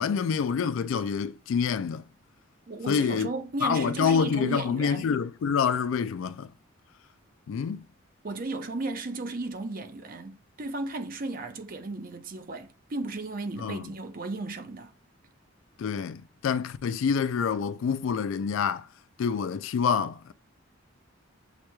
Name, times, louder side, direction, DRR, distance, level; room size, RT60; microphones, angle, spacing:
voice 1, 0.0-2.0 2.9-3.3 3.6-6.5 7.5-7.8 13.6-13.9 15.8-18.9 19.2-20.3, left 6 dB, 70° left, 0.3 m, -27 dB
voice 2, 2.7-5.1 8.2-14.9, right 2 dB, 45° right, 0.6 m, -35 dB
7.8 x 2.9 x 2.3 m
head